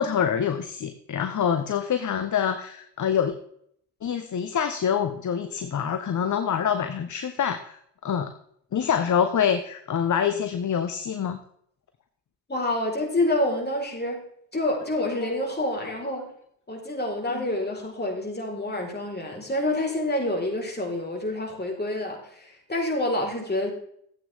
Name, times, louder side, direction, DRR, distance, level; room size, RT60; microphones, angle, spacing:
voice 1, 0.0-3.3 4.0-8.3 8.7-11.4 15.8-15.9 17.3-17.4, left 8 dB, 40° left, 9 dB, 1.0 m, -26 dB
voice 2, 12.5-14.2 14.5-16.3 16.7-23.7, left 1 dB, 20° left, 0 dB, 4.3 m, -27 dB
13.5 x 8.7 x 3.5 m, 0.67 s
hypercardioid pair, 50°, 48 cm